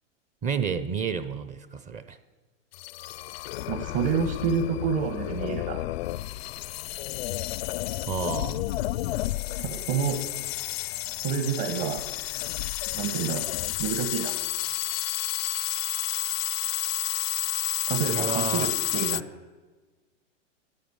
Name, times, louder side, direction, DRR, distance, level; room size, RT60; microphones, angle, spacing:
voice 1, 0.4-2.2 8.1-8.7 18.1-18.7, right 6 dB, 20° right, 11 dB, 0.6 m, -30 dB
sound 1, 2.7-19.2, left 17 dB, 55° left, 0.5 m, -31 dB
voice 2, 3.7-5.8 9.6-10.2 11.2-12.0 12.9-13.5 13.8-14.3 17.9-19.2, right 6 dB, 45° right, 6 dB, 1.5 m, -28 dB
11.5 x 11.5 x 7.2 m, 1.3 s
hypercardioid pair, 125°, 37 cm